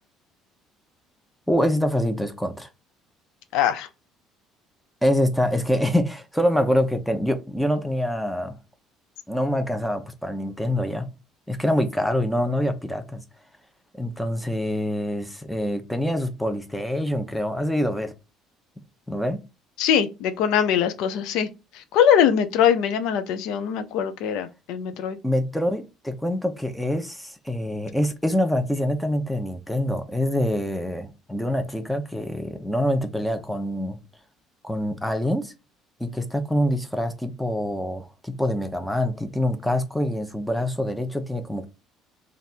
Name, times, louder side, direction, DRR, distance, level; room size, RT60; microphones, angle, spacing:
voice 1, 1.5-2.7 5.0-8.6 9.3-11.1 11.5-13.2 14.0-18.1 19.1-19.4 25.2-34.0 34.6-35.5 36.0-41.7, equal, 5° left, 0.8 m, -25 dB
voice 2, 3.5-3.9 19.8-21.5 21.7-25.2, left 8 dB, 65° left, 0.5 m, -22 dB
3.2 x 2.5 x 4.2 m
figure-of-eight pair, 55°, 0 cm